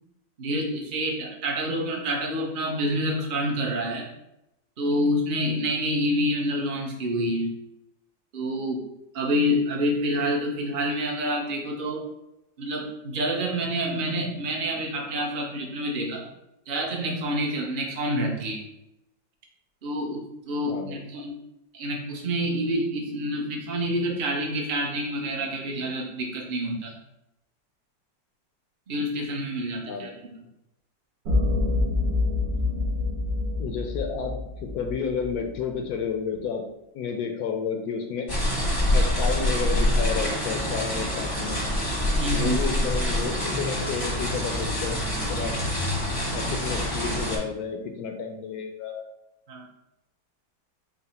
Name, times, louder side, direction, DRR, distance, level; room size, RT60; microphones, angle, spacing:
voice 1, 0.4-4.1 4.8-7.5 8.3-8.8 9.1-12.0 12.6-16.3 16.7-18.6 19.8-21.3 21.7-26.9 28.9-30.1 42.2-42.6 49.5-49.7, equal, 50° right, 0 dB, 0.6 m, -27 dB
voice 2, 20.7-21.0 29.7-30.1 33.6-36.6 36.9-38.3 38.9-41.6 42.3-45.0 45.3-45.6 46.3-49.0, left 6 dB, 70° left, 4 dB, 0.9 m, -31 dB
sound 1, 31.3-35.6, left 3 dB, 85° right, 1.7 m, -26 dB
sound 2, 38.3-47.4, left 1 dB, 20° left, 0.6 m, -26 dB
4.7 x 2.0 x 4.2 m, 0.87 s
omnidirectional pair, 1.9 m